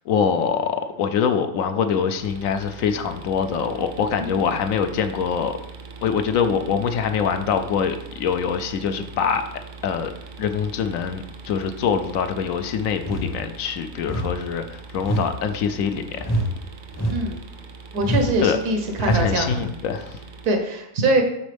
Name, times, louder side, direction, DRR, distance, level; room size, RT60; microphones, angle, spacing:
voice 1, 0.1-5.6 6.0-9.4 9.8-10.1 10.4-16.3 18.4-18.6 19.0-20.2, left 6 dB, 70° left, 8 dB, 0.9 m, -24 dB
sound 1, 2.2-20.5, right 4 dB, 50° right, 0.6 m, -41 dB
sound 2, 13.0-13.4 14.0-14.4 15.0-15.4 16.2-16.5 16.9-17.4 18.0-18.4 19.0-19.4, equal, 15° left, 0.6 m, -25 dB
voice 2, 17.1-17.4 17.9-19.7 20.4-21.2, right 2 dB, 90° right, 4 dB, 1.6 m, -23 dB
11.5 x 4.1 x 3.4 m, 0.80 s
omnidirectional pair, 1.6 m